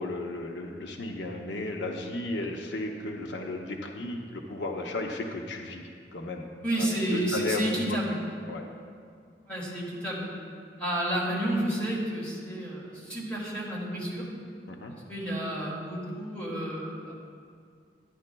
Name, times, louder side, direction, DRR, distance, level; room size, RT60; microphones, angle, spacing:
voice 1, 0.0-5.8 6.1-6.5 6.8-8.0 8.5-8.6 14.7-15.0, left 2 dB, 85° left, 2 dB, 0.7 m, -34 dB
voice 2, 6.6-8.2 9.5-10.3 10.8-14.2 15.1-17.1, right 1 dB, 10° left, -7 dB, 2.1 m, -30 dB
11.5 x 9.7 x 2.2 m, 2.2 s
head